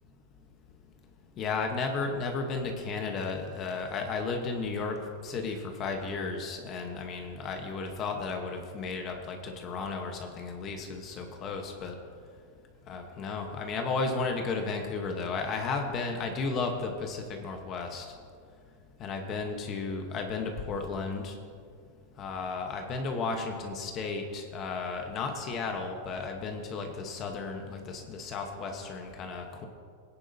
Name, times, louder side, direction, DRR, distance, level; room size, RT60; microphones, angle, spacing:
voice 1, 1.4-5.0 5.2-11.9 12.9-18.1 19.0-21.4 22.2-29.7, left 4 dB, 30° left, 3 dB, 1.0 m, -34 dB
19.0 x 9.9 x 2.7 m, 2.1 s
supercardioid pair, 155°, 0 cm